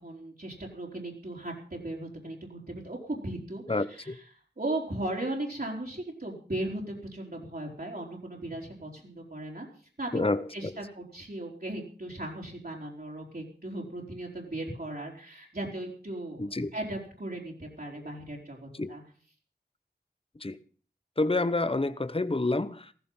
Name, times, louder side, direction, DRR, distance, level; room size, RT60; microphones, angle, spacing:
voice 1, 0.0-4.2 4.6-9.7 10.0-10.2 10.5-19.0, right 1 dB, 55° right, 4.2 m, -37 dB
voice 2, 3.7-4.2 10.1-10.7 16.4-16.7 18.7-18.9 20.4-20.6 21.2-23.0, left 2 dB, 30° left, 1.0 m, -28 dB
15.5 x 15.0 x 5.7 m
wide cardioid pair, 45°, 18 cm